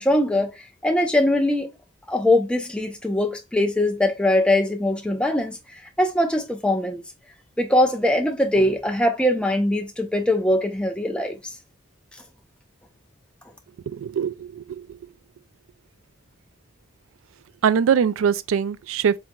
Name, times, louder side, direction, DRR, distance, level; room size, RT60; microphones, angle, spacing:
voice 1, 0.0-1.7 2.1-5.6 6.0-7.0 7.6-11.5, left 1 dB, 5° left, 0.5 m, -21 dB
voice 2, 13.9-15.0 17.6-19.2, right 7 dB, 85° right, 0.3 m, -22 dB
4.5 x 3.6 x 2.2 m
head